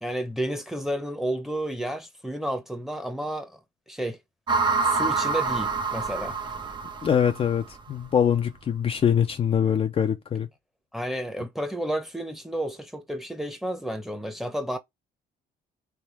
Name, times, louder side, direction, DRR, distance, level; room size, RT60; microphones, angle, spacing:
voice 1, 0.0-3.6 3.9-4.2 4.8-6.4 10.9-14.8, right 1 dB, ahead, 0.9 m, -31 dB
sound 1, 4.5-7.8, right 4 dB, 25° right, 0.7 m, -27 dB
voice 2, 7.0-10.5, left 8 dB, 35° left, 0.5 m, -23 dB
3.5 x 3.1 x 4.4 m
cardioid pair, 110°, 17 cm